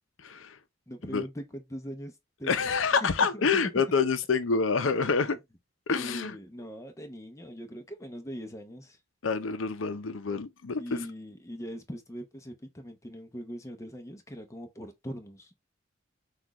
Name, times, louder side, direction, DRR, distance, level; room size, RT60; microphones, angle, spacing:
voice 1, 0.2-0.6 1.0-1.3 2.5-5.4 5.9-6.4 9.2-11.1, left 5 dB, 85° left, 0.6 m, -27 dB
voice 2, 0.9-2.7 3.0-3.8 5.9-9.0 10.7-15.5, equal, 15° left, 0.8 m, -41 dB
6.0 x 2.5 x 2.9 m
head